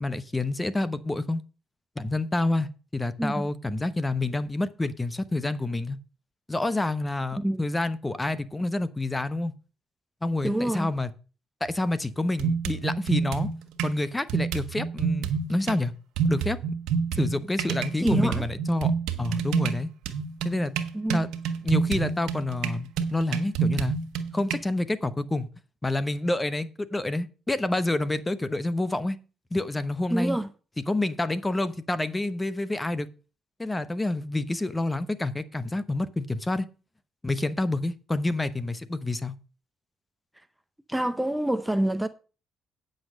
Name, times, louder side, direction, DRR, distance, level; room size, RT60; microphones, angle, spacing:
voice 1, 0.0-1.4 2.0-6.0 6.5-9.5 10.2-11.1 11.6-13.5 13.8-15.9 16.3-16.6 17.2-18.9 19.2-19.9 20.4-20.7 21.1-21.3 21.6-24.0 24.3-25.5 25.8-29.2 29.5-30.4 30.9-33.1 33.6-36.7 37.2-39.3, left 2 dB, 20° left, 1.0 m, -28 dB
voice 2, 10.4-10.9 18.0-18.5 20.9-21.2 30.1-30.5 40.9-42.1, right 1 dB, 5° right, 0.7 m, -26 dB
sound 1, 11.7-11.8 12.4-14.0 14.3-15.8 16.2-24.6, right 6 dB, 80° right, 1.2 m, -28 dB
9.4 x 6.6 x 6.4 m
supercardioid pair, 65°, 0 cm